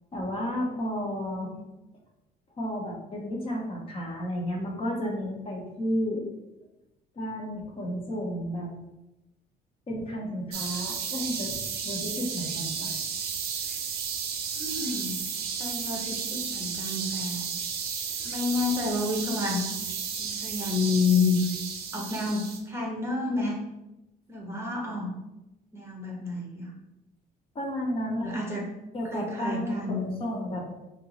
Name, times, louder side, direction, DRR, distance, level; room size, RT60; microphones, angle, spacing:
voice 1, 0.1-1.5 2.6-6.2 7.1-8.7 9.9-11.6 11.8-13.0 27.5-28.4 28.9-30.7, equal, 35° left, -1 dB, 0.9 m, -32 dB
sound 1, 10.5-22.6, right 6 dB, 70° right, 0.6 m, -33 dB
voice 2, 14.6-15.2 15.6-17.5 18.2-19.7 20.2-21.4 21.9-23.6 24.3-25.1 25.7-26.7 28.2-28.7 29.1-30.0, left 4 dB, 15° right, -2 dB, 0.8 m, -29 dB
4.3 x 2.0 x 3.9 m, 0.97 s
cardioid pair, 110°, 17 cm